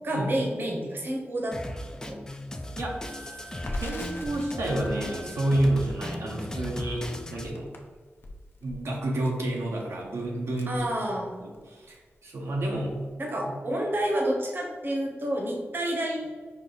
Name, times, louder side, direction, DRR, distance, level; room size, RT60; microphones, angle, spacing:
voice 1, 0.0-1.7 2.0-2.2 10.7-11.3 13.2-16.3, right 1 dB, 50° right, 0 dB, 0.9 m, -29 dB
Drum kit, 1.5-7.5, left 1 dB, 15° left, 0.4 m, -37 dB
voice 2, 2.7-7.7 8.6-11.1 11.4-13.0 13.5-13.6, right 1 dB, 85° right, -2 dB, 0.8 m, -30 dB
Wind instrument woodwind instrument, 2.8-5.6, equal, 5° right, 0.8 m, -46 dB
Crackle, 3.5-11.6 11.9-12.0 12.4-13.1, left 1 dB, 55° left, 0.6 m, -43 dB
5.3 x 2.4 x 3.9 m, 1.5 s
wide cardioid pair, 120°, 5 cm